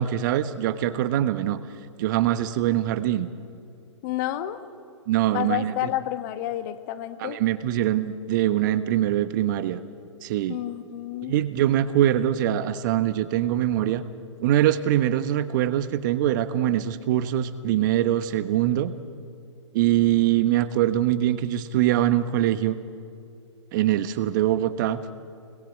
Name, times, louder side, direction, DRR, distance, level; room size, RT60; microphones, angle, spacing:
voice 1, 0.0-1.6 2.0-3.3 5.1-5.9 7.2-9.8 10.2-10.6 11.3-14.0 14.4-18.9 19.7-22.8 23.7-25.0, right 12 dB, 40° right, 12 dB, 1.3 m, -23 dB
voice 2, 4.0-4.6 5.3-7.4 10.5-11.3, left 14 dB, 35° left, 10 dB, 1.5 m, -29 dB
29.5 x 21.0 x 8.3 m, 2.4 s
figure-of-eight pair, 125°, 16 cm